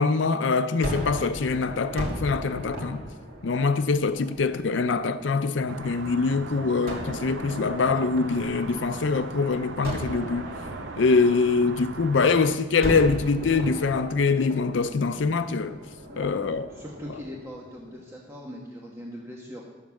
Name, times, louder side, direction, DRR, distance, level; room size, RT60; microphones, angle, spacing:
voice 1, 0.0-3.0 3.4-10.5 11.0-15.8 16.2-16.7, left 4 dB, 75° left, 0.5 m, -24 dB
Gunshot gunfire, 0.8-5.9 6.9-9.3 9.8-12.3 12.8-18.0, equal, 55° right, 2.5 m, -38 dB
sound 1, 5.7-12.6, right 4 dB, 75° right, 0.6 m, -39 dB
voice 2, 16.1-19.6, equal, 15° right, 1.2 m, -41 dB
11.5 x 7.2 x 7.1 m
head